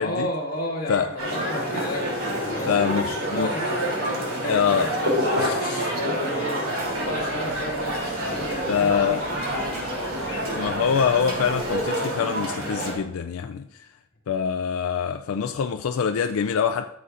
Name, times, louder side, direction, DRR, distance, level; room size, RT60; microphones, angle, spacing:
voice 1, 0.0-4.9 5.2-10.5, left 1 dB, 45° left, 2.1 m, -33 dB
sound 1, 1.2-12.9, equal, 80° right, 3.0 m, -27 dB
voice 2, 2.7-3.5 4.5-4.9 5.4-5.9 8.7-9.2 10.5-13.9 14.3-16.9, left 7 dB, 85° left, 0.4 m, -25 dB
sound 2, 6.8-11.8, left 1 dB, 5° left, 1.0 m, -42 dB
13.5 x 7.0 x 2.5 m
head